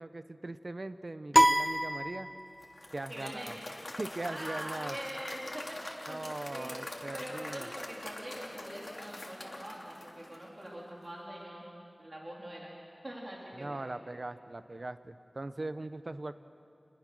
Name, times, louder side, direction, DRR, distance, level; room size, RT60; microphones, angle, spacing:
voice 1, 0.0-2.3 2.9-3.6 4.0-5.0 6.1-7.7 13.6-16.4, right 2 dB, 55° right, 11 dB, 0.9 m, -40 dB
sound 1, 1.3-2.8, equal, 5° right, 0.6 m, -26 dB
Applause / Crowd, 2.6-10.8, left 2 dB, 50° left, 2.9 m, -44 dB
voice 2, 3.1-3.6 4.3-6.8 7.1-11.6 12.0-12.7 13.0-13.9, right 1 dB, 40° right, -4 dB, 4.0 m, -43 dB
29.5 x 20.5 x 6.4 m, 2.5 s
wide cardioid pair, 50°, 0 cm